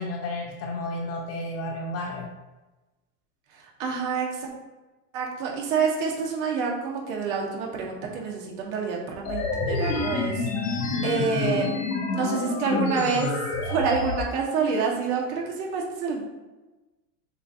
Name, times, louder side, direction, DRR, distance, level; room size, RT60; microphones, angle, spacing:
voice 1, 0.0-2.3, left 2 dB, 30° left, 1 dB, 0.6 m, -32 dB
voice 2, 3.5-4.5 5.1-11.7 12.1-16.2, right 5 dB, 55° right, -1 dB, 1.4 m, -28 dB
sound 1, 9.2-14.2, left 4 dB, 55° left, 1.0 m, -28 dB
6.5 x 2.6 x 2.7 m, 1.1 s
supercardioid pair, 120°, 49 cm